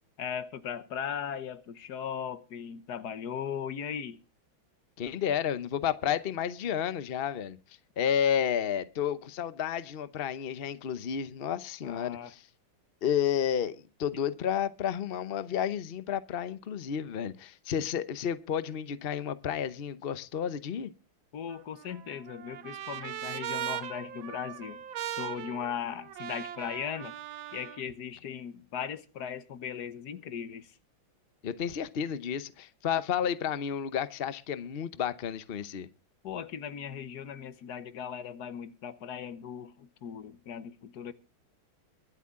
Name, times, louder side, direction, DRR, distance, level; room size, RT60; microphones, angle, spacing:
voice 1, 0.2-4.2 11.8-12.3 21.3-24.8 25.1-27.1 27.5-30.8 36.2-41.1, left 8 dB, 60° left, 1.3 m, -38 dB
voice 2, 5.0-7.6 8.0-12.4 13.0-20.9 31.4-35.9, left 8 dB, 80° left, 0.5 m, -31 dB
Trumpet, 21.5-27.8, right 11 dB, 75° right, 1.6 m, -39 dB
23.0 x 8.4 x 3.7 m
omnidirectional pair, 2.3 m